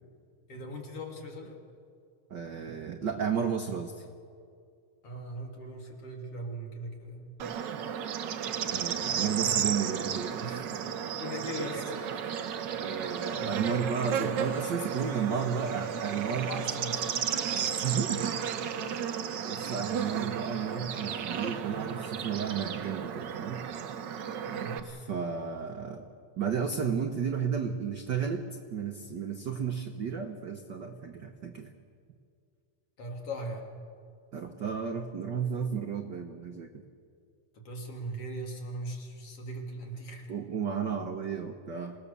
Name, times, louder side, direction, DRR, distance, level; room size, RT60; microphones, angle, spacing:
voice 1, 0.5-1.6 5.0-7.3 11.2-12.3 13.0-13.6 14.2-15.8 16.1-17.0 24.4-24.8 33.0-33.7 37.5-40.3, right 1 dB, 55° left, 0 dB, 3.5 m, -40 dB
voice 2, 2.3-4.0 8.7-10.8 12.8-16.5 17.5-18.4 18.8-19.0 19.4-23.6 24.8-26.0 26.4-28.4 28.7-31.7 34.3-36.7 40.3-41.9, right 7 dB, 65° right, 4 dB, 1.1 m, -33 dB
Bird / Insect, 7.4-24.8, right 8 dB, 85° right, 1.0 m, -33 dB
27.0 x 18.0 x 6.9 m, 2.3 s
omnidirectional pair, 3.3 m